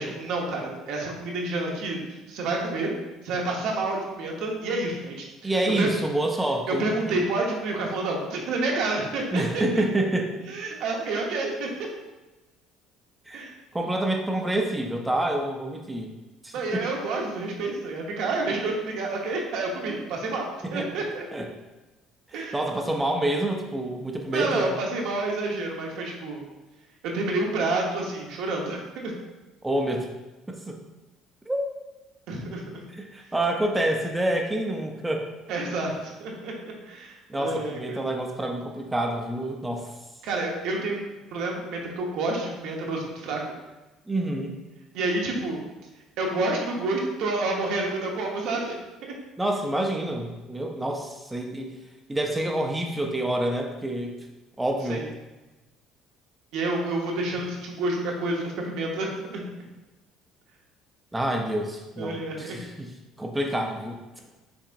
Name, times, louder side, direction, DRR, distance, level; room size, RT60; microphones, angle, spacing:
voice 1, 0.0-2.9 3.2-5.5 5.8-5.9 6.7-9.6 10.5-11.7 13.3-13.5 16.5-20.5 20.7-21.2 22.3-22.6 24.3-26.4 27.0-29.1 32.3-32.7 35.5-38.0 40.2-41.0 41.3-43.5 44.9-45.6 46.2-48.7 49.0-49.1 54.9-55.0 56.5-59.4 62.0-62.6, right 2 dB, 70° right, 0 dB, 1.0 m, -29 dB
voice 2, 5.4-7.2 9.3-10.3 13.3-13.5 13.7-16.1 16.4-16.9 20.6-20.9 21.3-21.5 22.3-24.7 29.6-30.1 30.5-30.8 31.5-31.6 32.9-35.3 37.3-39.9 44.1-44.6 49.4-51.8 52.1-54.2 54.6-55.1 61.1-62.9 63.2-64.2, right 1 dB, 10° right, 2 dB, 0.6 m, -27 dB
5.8 x 3.6 x 2.6 m, 1.1 s
supercardioid pair, 85°, 0 cm